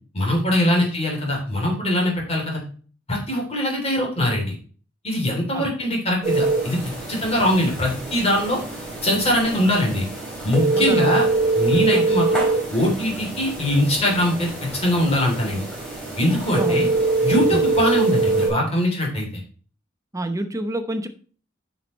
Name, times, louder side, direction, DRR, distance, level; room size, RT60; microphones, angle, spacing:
voice 1, 0.1-2.6 3.1-4.5 5.0-8.6 9.0-10.1 10.4-11.3 11.6-12.4 12.7-15.6 16.2-16.9 17.2-19.3, left 1 dB, 30° left, 0 dB, 3.3 m, -22 dB
sound 1, 6.2-18.5, right 3 dB, 5° left, 4.5 m, -24 dB
voice 2, 10.7-11.2 11.9-12.1 16.6-16.8 17.5-17.6 20.1-21.1, right 1 dB, 15° right, 8 dB, 0.9 m, -28 dB
9.5 x 6.0 x 3.2 m, 0.41 s
head